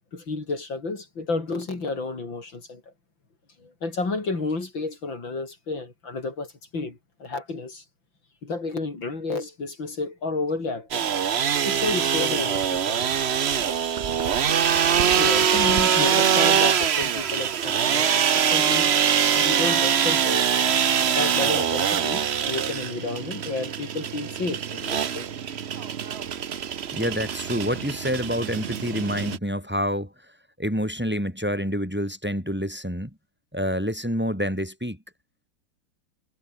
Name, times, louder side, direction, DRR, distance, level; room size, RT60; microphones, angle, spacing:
voice 1, 0.1-2.8 3.6-7.8 8.4-11.1 11.6-13.2 13.6-13.7 15.2-18.9 19.4-20.5 21.2-25.3, left 3 dB, 75° left, 5.5 m, -31 dB
sound 1, 10.9-29.4, right 8 dB, 50° right, 0.8 m, -23 dB
voice 2, 26.9-30.1 30.6-33.1 33.5-35.0, equal, 5° right, 6.4 m, -27 dB
omnidirectional pair, 2.1 m